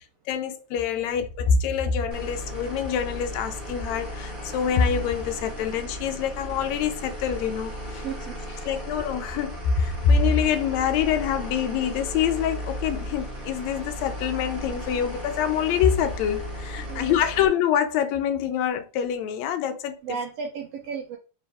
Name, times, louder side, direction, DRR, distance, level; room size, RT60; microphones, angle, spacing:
voice 1, 0.3-8.0 8.6-20.0, left 7 dB, 75° left, 1.8 m, -25 dB
sound 1, 2.1-17.5, equal, 45° right, 0.7 m, -36 dB
voice 2, 8.0-8.8 16.9-17.2 20.0-21.2, right 6 dB, 85° right, 1.4 m, -34 dB
4.7 x 3.2 x 3.4 m
omnidirectional pair, 3.5 m